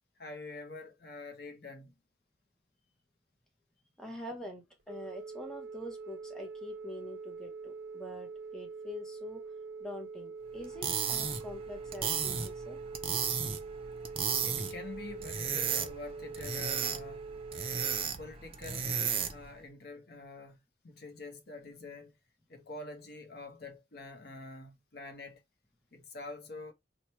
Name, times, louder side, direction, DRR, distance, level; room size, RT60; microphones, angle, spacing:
voice 1, 0.2-1.9 14.4-17.2 18.2-18.9 19.2-20.6 20.8-22.1 22.5-25.4 25.9-26.7, left 3 dB, 55° left, 0.7 m, -46 dB
voice 2, 4.0-9.4 9.8-12.8, left 1 dB, 5° left, 0.7 m, -45 dB
Telephone, 4.8-18.0, right 4 dB, 60° right, 0.7 m, -44 dB
sound 1, 10.6-19.5, right 7 dB, 30° right, 0.4 m, -34 dB
3.0 x 2.2 x 4.2 m
head